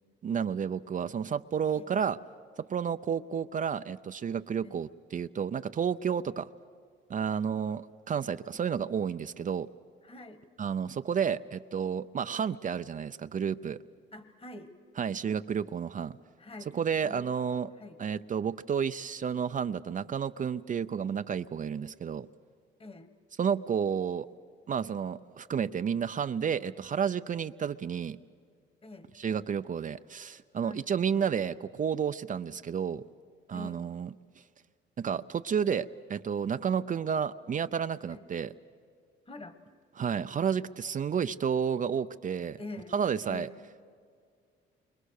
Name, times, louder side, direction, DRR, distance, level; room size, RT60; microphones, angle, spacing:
voice 1, 0.2-2.2 2.6-6.5 7.1-9.7 10.6-13.8 15.0-16.2 16.7-17.7 18.0-22.3 23.4-24.3 24.7-28.2 29.2-33.0 33.5-34.1 35.0-38.5 40.0-42.6 42.9-43.5, right 7 dB, 40° right, 10 dB, 0.6 m, -31 dB
voice 2, 10.0-10.4 14.1-14.7 16.4-16.8 17.0-17.3 17.7-18.0 22.8-23.1 28.8-29.1 30.6-30.9 33.5-33.8 38.1-38.3 39.3-39.6 42.6-43.6, left 2 dB, 30° left, 11 dB, 1.7 m, -46 dB
29.0 x 23.5 x 6.5 m, 2.1 s
cardioid pair, 90°, 20 cm